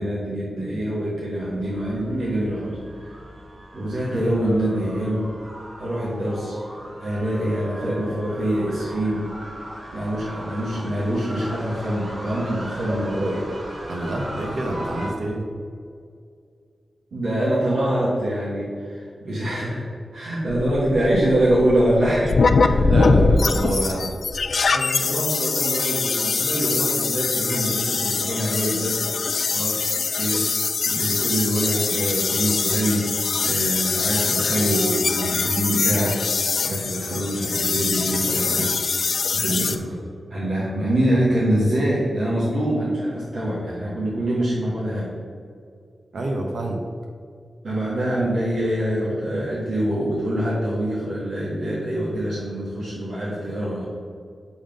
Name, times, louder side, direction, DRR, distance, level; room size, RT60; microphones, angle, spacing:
voice 1, 0.0-3.2 3.7-5.2 5.8-6.6 7.0-9.3 9.9-13.5 17.1-19.8 20.1-23.3 24.7-30.5 30.8-38.7 39.3-45.1 47.6-53.8, right 1 dB, 90° right, -8 dB, 1.7 m, -25 dB
sound 1, 1.3-15.1, right 1 dB, 50° right, 1.4 m, -38 dB
voice 2, 13.9-15.4 22.8-24.1 24.7-24.8 38.2-38.6 46.1-46.8, right 1 dB, 70° right, 1 dB, 1.1 m, -27 dB
sound 2, 20.5-39.8, left 4 dB, 60° left, 0.4 m, -23 dB
7.0 x 3.7 x 5.2 m, 2.2 s
wide cardioid pair, 160°, 0 cm